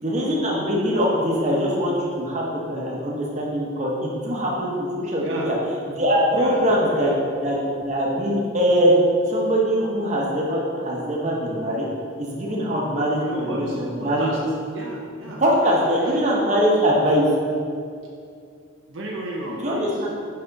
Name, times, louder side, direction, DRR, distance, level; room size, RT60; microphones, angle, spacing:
voice 1, 0.0-5.5 5.9-7.1 7.4-9.0 9.3-11.9 12.2-14.3 15.4-17.3 19.6-20.1, equal, 35° right, -4 dB, 1.0 m, -22 dB
voice 2, 5.2-5.5 6.3-6.6 6.9-7.1 13.2-14.4 14.7-16.2 18.0-18.1 18.9-20.1, right 1 dB, 65° right, -3 dB, 0.8 m, -34 dB
5.7 x 5.2 x 3.9 m, 2.4 s
head